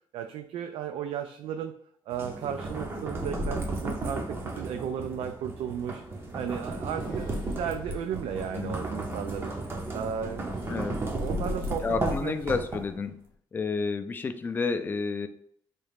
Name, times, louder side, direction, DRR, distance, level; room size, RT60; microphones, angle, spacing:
voice 1, 0.1-1.7 2.1-6.0 6.3-9.5 9.9-10.5 11.1-12.3, right 8 dB, 85° right, 6 dB, 0.4 m, -34 dB
sound 1, 2.1-13.1, right 2 dB, 25° right, 0.6 m, -34 dB
sound 2, 5.8-13.3, left 7 dB, 55° left, 0.7 m, -45 dB
voice 2, 10.7-11.0 11.8-13.2 13.5-15.3, left 4 dB, 20° left, 9 dB, 0.3 m, -30 dB
4.1 x 2.4 x 3.3 m, 0.68 s
cardioid pair, 155°, 9 cm